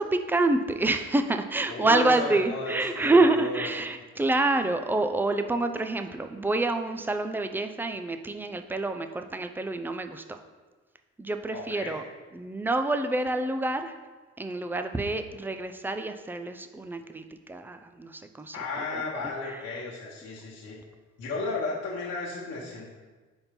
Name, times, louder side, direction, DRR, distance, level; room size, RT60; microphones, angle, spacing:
voice 1, 0.0-10.4 11.2-12.0 12.3-13.9 14.4-19.1, right 2 dB, 5° right, 8 dB, 0.3 m, -27 dB
voice 2, 1.7-3.7 11.5-12.0 18.5-20.8 21.2-22.9, left 3 dB, 55° left, -5 dB, 1.2 m, -34 dB
4.4 x 4.2 x 5.2 m, 1.3 s
cardioid pair, 90°, 30 cm